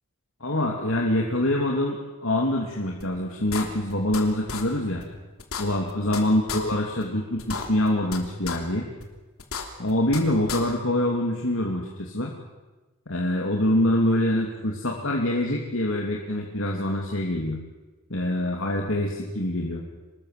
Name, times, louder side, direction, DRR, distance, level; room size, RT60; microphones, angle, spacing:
voice 1, 0.4-5.0 5.6-8.9 9.8-12.3 13.1-17.6 18.1-19.8, left 1 dB, 70° left, -1 dB, 2.9 m, -25 dB
sound 1, 3.0-3.1 3.5-4.2 4.5-4.6 5.0-5.1 5.4-6.2 6.5-6.6 7.0-7.1 7.4-8.2 8.5-8.6 9.0-9.1 9.4-10.2 10.5-10.6, left 5 dB, 85° left, 3.2 m, -32 dB
25.5 x 20.0 x 7.8 m, 1.2 s
head